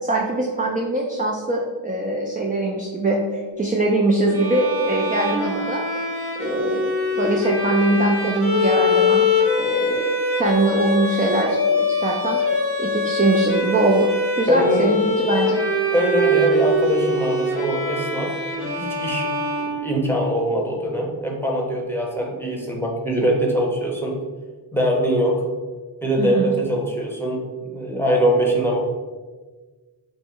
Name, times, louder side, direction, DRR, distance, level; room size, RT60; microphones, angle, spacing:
voice 1, 0.0-5.8 6.4-9.2 9.6-12.4 12.8-14.1 14.4-15.6 26.2-26.5, right 2 dB, 20° right, -1 dB, 0.4 m, -22 dB
Bowed string instrument, 4.3-20.2, left 2 dB, 75° left, 1.3 m, -23 dB
voice 2, 14.5-14.9 15.9-19.3 19.6-24.2 24.7-25.4 26.0-28.8, right 1 dB, 5° left, -1 dB, 0.8 m, -22 dB
4.5 x 2.1 x 4.4 m, 1.4 s
wide cardioid pair, 90°, 49 cm